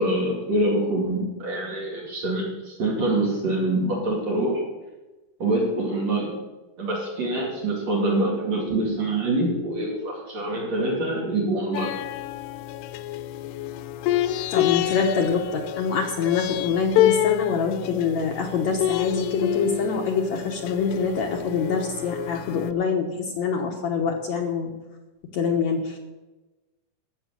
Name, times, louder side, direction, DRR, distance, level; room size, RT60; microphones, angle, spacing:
voice 1, 0.0-4.6 5.4-6.3 6.8-11.9, right 1 dB, 45° right, -3 dB, 3.5 m, -25 dB
sound 1, 11.7-22.7, left 13 dB, 85° left, 2.6 m, -27 dB
voice 2, 14.5-24.7 25.3-26.0, left 5 dB, 70° left, 1 dB, 1.8 m, -25 dB
12.5 x 7.3 x 8.0 m, 1.1 s
omnidirectional pair, 4.6 m